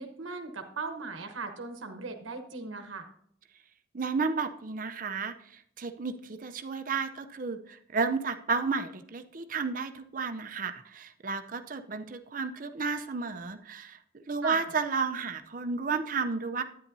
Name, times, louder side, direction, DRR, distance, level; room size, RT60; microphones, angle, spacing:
voice 1, 0.0-3.0 14.4-14.6, right 4 dB, 90° right, 4 dB, 1.0 m, -38 dB
voice 2, 3.9-16.6, right 4 dB, 45° right, 8 dB, 0.6 m, -32 dB
10.0 x 9.3 x 2.7 m, 0.67 s
head